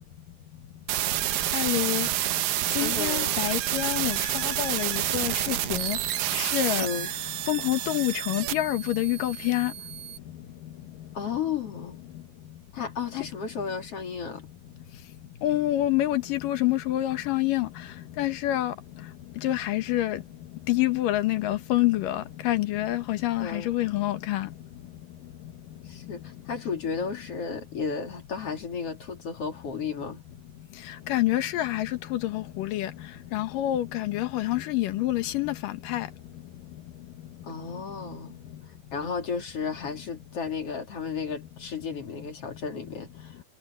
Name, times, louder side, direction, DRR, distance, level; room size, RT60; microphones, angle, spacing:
sound 1, 0.9-10.2, right 13 dB, 70° right, 2.1 m, -29 dB
voice 1, 1.5-2.1 2.7-4.2 4.4-6.0 6.4-6.9 7.5-9.7 15.4-17.7 18.2-18.7 19.4-20.2 20.7-24.5 31.1-32.9 33.3-36.1, left 15 dB, 85° left, 2.9 m, -27 dB
voice 2, 2.8-3.4 6.8-7.1 11.1-12.0 12.7-14.5 23.4-23.8 25.9-30.2 34.7-34.8 37.4-38.4 38.9-43.4, left 6 dB, 45° left, 3.8 m, -33 dB
omnidirectional pair, 3.8 m